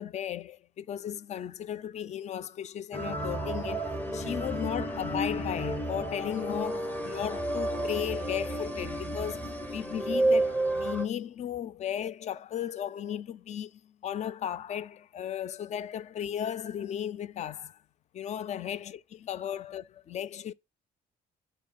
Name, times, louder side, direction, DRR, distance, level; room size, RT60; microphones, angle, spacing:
voice 1, 0.0-3.9 4.1-17.8 18.1-20.5, left 9 dB, 40° left, 0.4 m, -35 dB
sound 1, 2.9-11.1, right 1 dB, 10° left, 1.0 m, -31 dB
10.5 x 4.7 x 2.3 m
cardioid pair, 110°, 17 cm